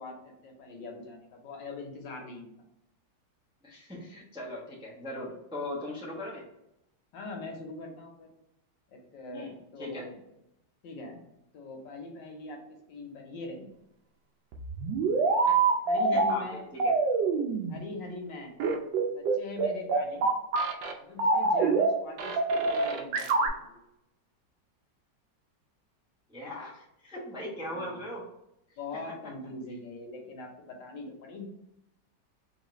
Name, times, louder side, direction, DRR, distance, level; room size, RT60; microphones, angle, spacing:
voice 1, 0.0-2.5 7.1-8.3 8.9-10.2 10.8-11.2 11.5-12.6 12.9-13.7 15.8-16.7 17.7-18.5 19.1-20.3 21.0-23.8 27.7-28.0 28.8-31.5, left 3 dB, 75° left, 2 dB, 1.6 m, -42 dB
voice 2, 3.6-6.4 9.3-10.0 15.5-15.6 16.1-16.9 26.3-28.3, left 1 dB, 5° right, -5 dB, 0.5 m, -39 dB
sound 1, 14.5-16.3 16.8-17.8 18.6-20.9 21.2-21.9 22.2-23.5, right 4 dB, 85° right, 1.4 m, -25 dB
4.0 x 3.0 x 3.0 m, 0.84 s
omnidirectional pair, 2.0 m